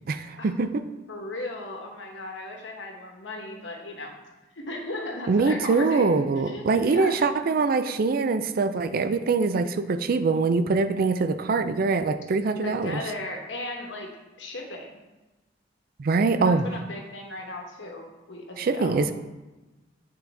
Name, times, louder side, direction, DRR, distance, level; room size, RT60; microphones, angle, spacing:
voice 1, 0.1-0.8 5.3-13.0 16.0-16.7 18.6-19.1, right 4 dB, 55° right, 10 dB, 0.4 m, -23 dB
voice 2, 1.1-4.2 4.5-6.1 6.3-7.5 12.6-14.1 14.4-14.9 16.4-19.0, left 2 dB, 85° left, 2 dB, 1.1 m, -36 dB
8.5 x 3.9 x 3.4 m, 1.1 s
head